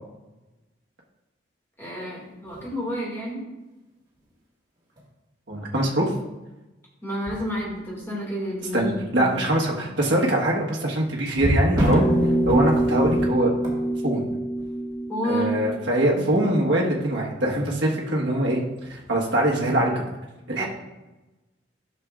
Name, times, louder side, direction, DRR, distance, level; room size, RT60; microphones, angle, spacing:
voice 1, 1.8-3.4 7.0-9.3 15.1-15.5 16.1-16.3 20.6-20.7, equal, 15° left, -4 dB, 2.1 m, -30 dB
sound 1, 2.3-2.7 4.1-4.3 5.0-5.1 7.3-8.1 8.6-8.8 11.3-14.9 18.8-19.0, equal, 25° right, 2.3 m, -28 dB
voice 2, 5.5-6.1 8.7-12.1 12.5-13.5 14.0-14.3 15.2-18.6 18.9-20.0 20.5-20.6, right 1 dB, 65° right, -2 dB, 1.4 m, -23 dB
sound 2, 11.9-16.6, right 1 dB, 35° left, 0.6 m, -25 dB
11.0 x 6.7 x 2.5 m, 1.1 s
head